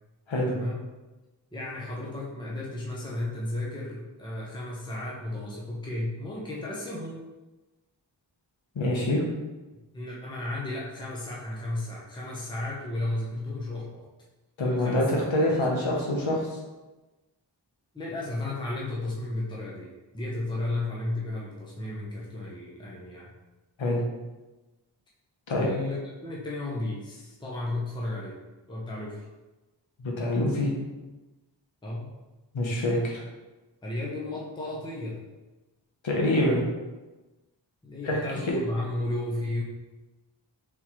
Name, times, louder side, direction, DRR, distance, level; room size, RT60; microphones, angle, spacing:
voice 1, 0.5-0.8 1.5-7.2 9.9-14.0 14.6-15.1 15.5-15.8 17.9-23.3 25.5-28.4 28.7-29.3 31.8-32.1 33.8-35.3 37.8-39.6, left 2 dB, 10° left, -4 dB, 0.7 m, -34 dB
voice 2, 8.8-9.2 14.6-16.5 23.8-24.0 25.5-25.7 30.0-30.7 32.5-33.2 36.0-36.6 38.0-38.2 38.5-38.6, left 1 dB, 85° left, -1 dB, 0.9 m, -25 dB
3.6 x 3.0 x 2.9 m, 1.1 s
wide cardioid pair, 55°, 45 cm